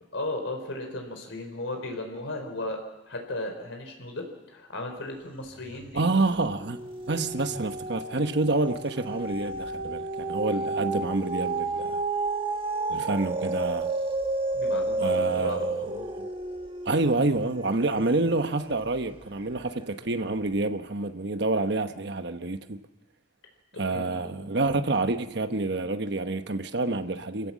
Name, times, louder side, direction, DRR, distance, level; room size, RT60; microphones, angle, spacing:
voice 1, 0.1-2.8 3.1-6.1 12.9-13.3 14.5-15.7 23.9-24.5, left 2 dB, 90° left, 4.0 m, -35 dB
sound 1, 5.6-6.1 6.5-19.0 19.5-19.6, right 3 dB, 25° right, 1.6 m, -31 dB
voice 2, 5.9-6.8 7.1-12.0 12.9-13.9 15.0-16.3 16.8-22.8 23.8-27.5, right 2 dB, 60° right, 1.1 m, -28 dB
26.5 x 15.5 x 7.5 m
head